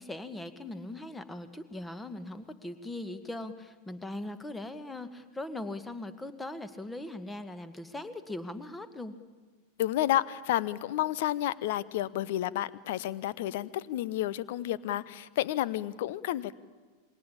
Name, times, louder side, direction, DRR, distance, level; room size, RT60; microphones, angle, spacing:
voice 1, 0.0-9.1, left 2 dB, 10° left, 11 dB, 1.8 m, -40 dB
voice 2, 9.8-16.5, left 13 dB, 50° left, 19 dB, 0.9 m, -31 dB
27.0 x 22.5 x 8.8 m, 1.4 s
figure-of-eight pair, 90°, 0 cm